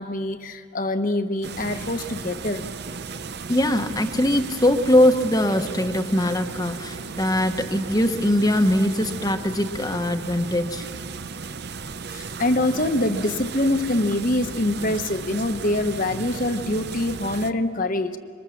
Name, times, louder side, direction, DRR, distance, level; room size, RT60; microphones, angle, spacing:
voice 1, 0.0-2.6 12.1-18.2, left 1 dB, 40° left, 8 dB, 1.1 m, -24 dB
sound 1, 1.4-17.5, right 4 dB, 50° right, 0.7 m, -35 dB
voice 2, 3.5-10.9, left 1 dB, 15° left, 7 dB, 1.1 m, -21 dB
26.5 x 23.5 x 7.2 m, 2.2 s
head